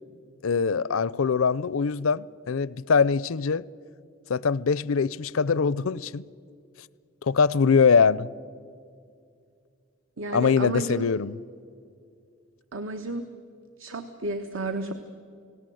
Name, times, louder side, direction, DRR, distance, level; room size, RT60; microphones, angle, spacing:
voice 1, 0.4-3.6 4.3-6.2 7.2-8.3 10.3-11.4, left 5 dB, 85° left, 0.5 m, -23 dB
voice 2, 10.2-11.1 12.7-13.2 13.8-14.9, right 2 dB, 75° right, 1.2 m, -32 dB
29.5 x 18.0 x 7.8 m
head